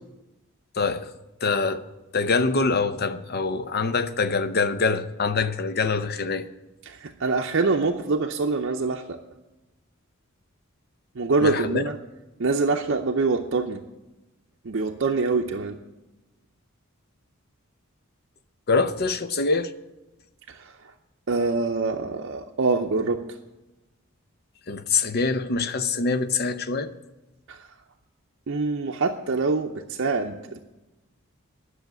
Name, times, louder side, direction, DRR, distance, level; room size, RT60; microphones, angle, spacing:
voice 1, 0.7-1.1 1.4-1.9 2.1-6.5 11.4-11.8 18.7-19.7 24.7-26.9, left 4 dB, 45° left, 0.6 m, -24 dB
voice 2, 6.9-9.2 11.2-11.9 12.4-13.8 14.6-15.8 20.5-20.8 21.3-23.2 27.5-27.7 28.5-30.6, right 3 dB, 55° right, 0.6 m, -25 dB
10.5 x 6.4 x 9.1 m
head